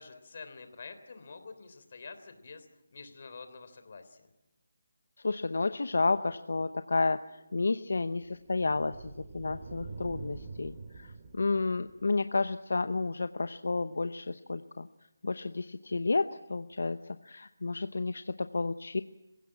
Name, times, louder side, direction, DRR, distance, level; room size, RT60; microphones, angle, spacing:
voice 1, 0.0-4.3, left 4 dB, 50° left, 9 dB, 3.3 m, -48 dB
voice 2, 5.2-7.2 7.5-14.9 15.2-19.0, left 3 dB, 75° left, 11 dB, 0.8 m, -31 dB
sound 1, 7.2-12.4, right 4 dB, 35° right, 2.3 m, -47 dB
27.0 x 16.5 x 8.7 m, 0.99 s
figure-of-eight pair, 165°, 0 cm